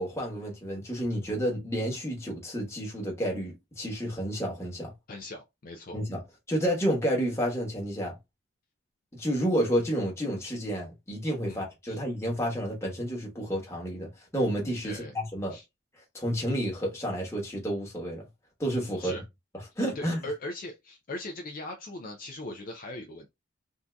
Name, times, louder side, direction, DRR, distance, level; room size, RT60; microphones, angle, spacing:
voice 1, 0.0-4.9 5.9-6.2 6.5-8.1 9.1-15.6 16.1-18.2 18.6-19.1 19.8-20.2, equal, 15° left, 1.1 m, -30 dB
voice 2, 5.1-6.0 11.4-12.0 14.8-15.1 15.5-15.6 19.0-19.2 19.9-23.3, left 1 dB, 45° left, 0.4 m, -40 dB
3.6 x 2.6 x 2.2 m
head